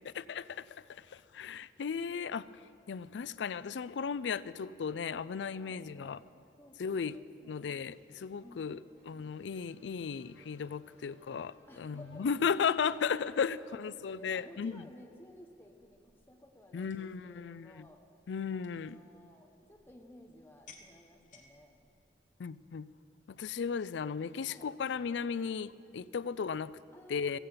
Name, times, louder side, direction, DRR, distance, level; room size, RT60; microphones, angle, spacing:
voice 1, 0.2-2.5 2.9-6.2 6.8-7.1 7.4-8.8 9.1-14.8 16.7-17.9 18.3-19.0 22.4-22.9 23.4-26.7 27.1-27.4, left 6 dB, 85° left, 17 dB, 0.4 m, -35 dB
voice 2, 5.6-6.2 6.6-7.7 8.4-8.9 11.7-12.3 12.9-13.0 13.6-18.0 18.5-21.8 24.4-24.7 26.9-27.4, left 1 dB, 10° left, 2 dB, 1.1 m, -56 dB
sound 1, 8.5-13.7, left 1 dB, 40° right, 4.7 m, -64 dB
sound 2, 15.1-22.1, left 5 dB, 45° left, 1.2 m, -63 dB
15.5 x 15.0 x 5.7 m, 2.9 s
head